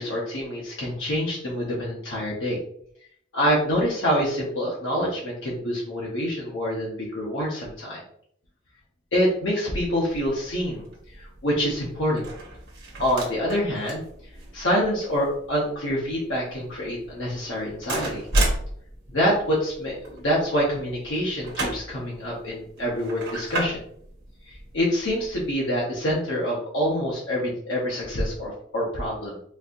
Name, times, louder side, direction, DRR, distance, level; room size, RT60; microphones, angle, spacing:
voice 1, 0.0-2.6 3.3-8.0 9.1-10.9 11.2-12.3 13.0-14.1 14.5-18.3 19.1-23.8 24.5-29.4, equal, 70° left, -4 dB, 0.8 m, -26 dB
sound 1, 10.1-25.5, right 1 dB, 60° right, 1.0 m, -34 dB
4.1 x 2.6 x 2.5 m, 0.65 s
head